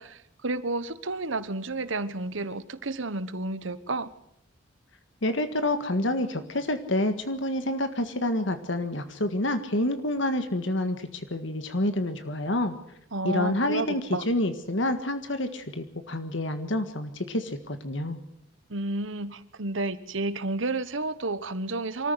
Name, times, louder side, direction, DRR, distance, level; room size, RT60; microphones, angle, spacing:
voice 1, 0.0-4.1 13.1-14.3 18.7-22.1, right 2 dB, 75° right, 13 dB, 1.2 m, -31 dB
voice 2, 5.2-12.8 13.2-14.0 14.3-18.2, left 1 dB, 65° left, 8 dB, 1.7 m, -28 dB
25.0 x 14.0 x 8.0 m, 0.74 s
head